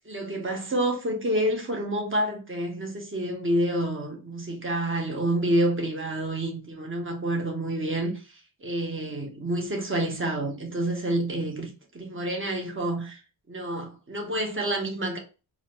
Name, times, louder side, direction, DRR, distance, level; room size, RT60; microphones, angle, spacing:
voice 1, 0.0-8.2 8.6-11.7 11.9-13.2 13.5-15.2, right 1 dB, 25° right, 1.4 m, -28 dB
4.0 x 2.7 x 3.2 m
cardioid pair, 60°, 47 cm